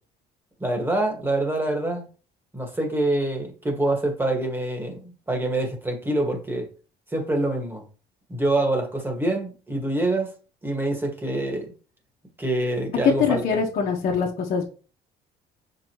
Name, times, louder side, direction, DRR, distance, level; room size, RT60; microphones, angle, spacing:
voice 1, 0.6-2.1 2.5-6.7 7.1-7.8 8.3-10.3 10.6-11.7 12.4-13.4, right 1 dB, 10° right, 1.9 m, -25 dB
voice 2, 13.0-14.6, left 6 dB, 55° left, 1.3 m, -23 dB
6.5 x 5.2 x 3.1 m
cardioid pair, 110°, 17 cm